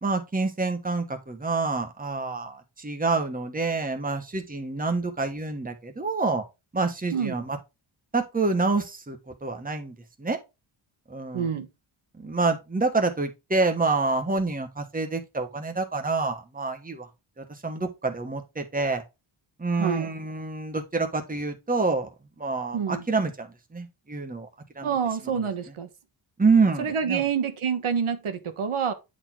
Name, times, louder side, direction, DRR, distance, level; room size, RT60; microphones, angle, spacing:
voice 1, 0.0-6.4 6.7-7.6 8.1-10.4 11.1-11.5 12.1-17.1 17.4-19.0 19.6-22.1 22.4-24.5 24.7-25.0 25.3-25.5 26.4-27.2, right 3 dB, 15° right, 1.3 m, -27 dB
voice 2, 11.3-11.7 19.8-20.1 22.7-23.0 24.8-25.9 26.8-28.9, right 7 dB, 80° right, 1.5 m, -27 dB
9.8 x 4.3 x 4.4 m
wide cardioid pair, 135°, 49 cm